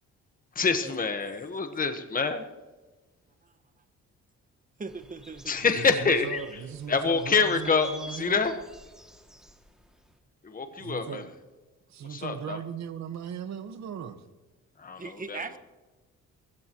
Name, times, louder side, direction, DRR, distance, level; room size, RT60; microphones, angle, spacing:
voice 1, 0.5-2.4 5.5-6.4 6.9-8.5 10.4-11.2 12.1-12.6 14.8-15.4, left 5 dB, 30° left, 7 dB, 1.4 m, -26 dB
voice 2, 4.8-5.6 15.0-15.6, right 4 dB, 25° right, 9 dB, 1.5 m, -39 dB
sound 1, 4.9-10.1, right 1 dB, ahead, 2.4 m, -48 dB
voice 3, 5.6-8.4 10.8-11.3 11.9-14.2, right 8 dB, 65° right, 9 dB, 1.6 m, -38 dB
27.5 x 15.5 x 3.1 m, 1.3 s
cardioid pair, 90°, 30 cm